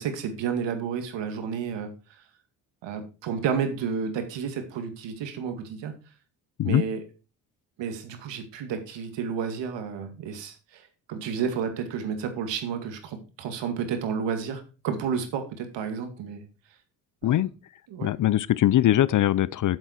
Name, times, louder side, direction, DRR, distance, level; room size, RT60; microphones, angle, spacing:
voice 1, 0.0-1.9 2.8-5.9 6.6-7.0 7.8-16.5 17.2-17.4 17.9-18.1, right 6 dB, 70° right, 2.2 m, -31 dB
voice 2, 18.0-19.8, left 13 dB, 45° left, 0.5 m, -21 dB
8.1 x 7.5 x 4.4 m
supercardioid pair, 60°, 44 cm